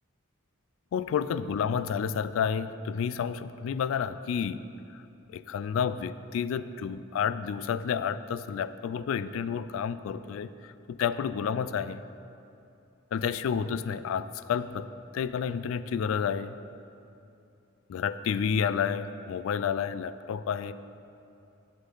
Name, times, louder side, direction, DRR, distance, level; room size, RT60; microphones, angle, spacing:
voice 1, 0.9-4.6 4.9-5.0 5.3-12.0 13.1-14.9 15.1-16.5 17.9-20.7, left 7 dB, 70° left, 15 dB, 0.3 m, -30 dB
8.4 x 8.1 x 3.9 m, 2.7 s
head